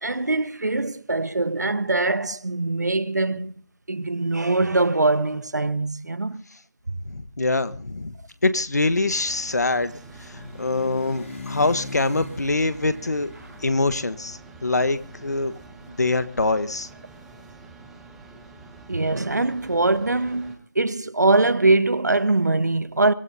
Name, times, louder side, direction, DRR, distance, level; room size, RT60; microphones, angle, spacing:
voice 1, 0.0-3.6 3.9-6.4 18.9-23.1, right 2 dB, 80° right, 1.3 m, -22 dB
voice 2, 7.0-8.1 8.4-9.9 10.3-13.3 13.6-15.5 15.9-16.9, left 2 dB, 75° left, 1.4 m, -24 dB
sound 1, 8.4-16.4, left 2 dB, 50° left, 5.3 m, -41 dB
sound 2, 9.1-20.6, right 3 dB, 5° right, 0.8 m, -47 dB
24.0 x 19.0 x 2.8 m
figure-of-eight pair, 170°, 9 cm